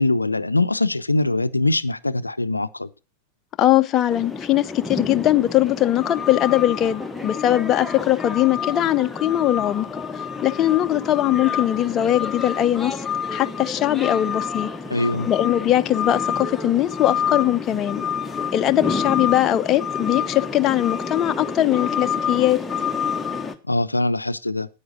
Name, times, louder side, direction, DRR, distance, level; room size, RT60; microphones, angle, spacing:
voice 1, 0.0-2.9 14.9-15.3 23.7-24.7, left 2 dB, 85° left, 0.5 m, -22 dB
voice 2, 3.6-9.9 10.4-12.9 13.3-14.7 15.3-18.0 18.5-22.6, left 13 dB, 30° left, 0.6 m, -20 dB
sound 1, 4.1-23.5, left 6 dB, 10° left, 1.1 m, -28 dB
9.5 x 8.8 x 5.1 m
figure-of-eight pair, 90°, 0 cm